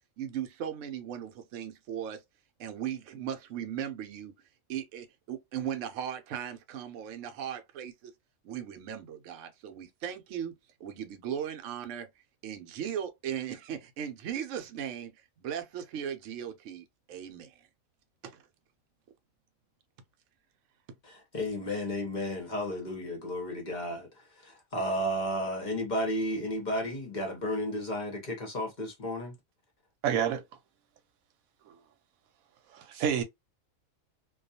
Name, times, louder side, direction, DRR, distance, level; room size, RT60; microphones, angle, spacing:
voice 1, 0.2-2.2 2.6-4.3 4.7-8.1 8.4-12.1 12.4-17.5 18.2-18.4, right 9 dB, 70° right, 0.9 m, -38 dB
voice 2, 21.0-24.1 24.4-29.3, equal, 45° left, 0.7 m, -33 dB
voice 3, 30.0-30.4 31.7-31.8 32.7-33.2, right 8 dB, 85° right, 1.1 m, -28 dB
2.3 x 2.3 x 2.6 m
omnidirectional pair, 1.4 m